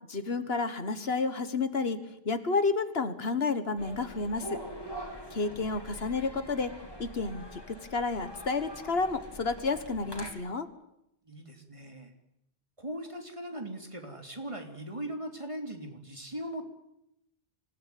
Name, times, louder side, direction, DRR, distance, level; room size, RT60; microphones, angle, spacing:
voice 1, 0.1-2.0 2.3-4.6 5.3-6.7 7.0-10.7, left 4 dB, 70° left, 10 dB, 1.7 m, -30 dB
sound 1, 3.8-10.3, equal, 20° left, 4.0 m, -44 dB
voice 2, 11.2-12.1 12.8-16.6, right 1 dB, 30° right, 4 dB, 3.3 m, -39 dB
26.5 x 16.5 x 9.4 m, 0.81 s
omnidirectional pair, 1.1 m